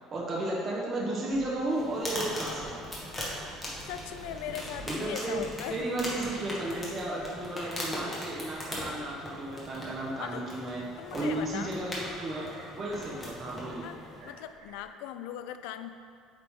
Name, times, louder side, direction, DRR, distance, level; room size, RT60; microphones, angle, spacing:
voice 1, 0.1-2.9 4.8-5.4 5.7-10.8 11.1-12.4 12.7-13.9, right 1 dB, 35° right, -4 dB, 1.0 m, -33 dB
Subway metro underground, 1.3-14.8, right 2 dB, 65° right, 1.0 m, -51 dB
sound 1, 1.7-14.3, left 1 dB, 15° left, 1.3 m, -40 dB
voice 2, 3.9-6.0 6.5-7.1 10.2-10.5 11.0-11.7 13.8-15.9, left 10 dB, 80° left, 10 dB, 0.3 m, -40 dB
8.2 x 3.2 x 3.6 m, 2.3 s
cardioid pair, 120°, 0 cm